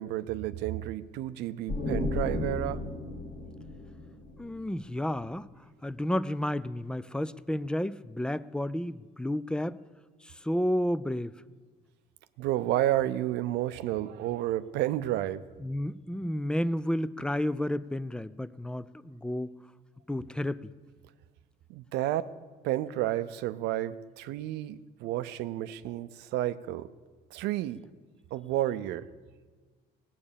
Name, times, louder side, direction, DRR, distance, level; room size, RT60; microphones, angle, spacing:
voice 1, 0.0-2.8 12.4-15.4 21.7-22.3 22.6-26.9 27.3-27.8 28.3-29.1, right 14 dB, 85° right, 13 dB, 0.6 m, -31 dB
sound 1, 1.7-5.3, left 2 dB, 60° left, 2.2 m, -34 dB
voice 2, 4.4-5.5 5.8-9.8 10.2-11.3 15.6-19.6 20.1-20.7, left 1 dB, 5° left, 17 dB, 0.4 m, -31 dB
18.0 x 8.6 x 6.9 m, 1.4 s
cardioid pair, 110°, 17 cm